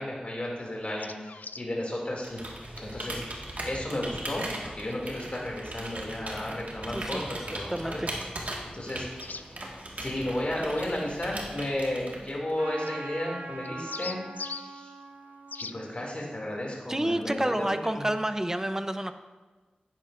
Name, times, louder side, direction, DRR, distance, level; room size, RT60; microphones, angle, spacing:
voice 1, 0.0-2.4 2.8-3.2 3.6-8.0 8.7-9.5 10.0-14.9 15.7-18.0, left 1 dB, 45° left, -2 dB, 2.5 m, -33 dB
sound 1, 0.8-1.7 4.9-5.0 9.2-9.5 10.7-11.0 12.9-13.0 13.6-14.7 15.5-15.8, left 4 dB, 75° left, 0.3 m, -39 dB
Computer keyboard, 2.2-12.5, right 1 dB, 60° right, 1.7 m, -39 dB
voice 2, 6.9-7.2 7.7-8.1 16.9-19.1, right 1 dB, 15° right, 9 dB, 0.6 m, -29 dB
Trumpet, 12.5-17.2, right 3 dB, 85° right, 0.7 m, -43 dB
10.0 x 9.9 x 2.6 m, 1.3 s
cardioid pair, 40°, 3 cm